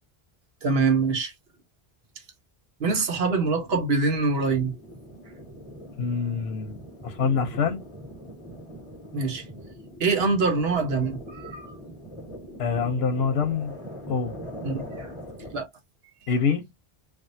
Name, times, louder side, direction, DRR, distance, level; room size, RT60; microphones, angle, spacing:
voice 1, 0.6-1.3 2.8-4.7 9.1-9.4 10.0-11.7 14.6-14.8 15.5-15.7, right 4 dB, 75° right, 1.1 m, -24 dB
sound 1, 3.6-15.6, equal, 30° left, 1.2 m, -42 dB
voice 2, 6.0-6.8 7.0-7.8 12.6-13.7 14.1-14.3 16.3-16.7, left 5 dB, 90° left, 1.0 m, -25 dB
3.4 x 2.4 x 2.6 m
omnidirectional pair, 1.0 m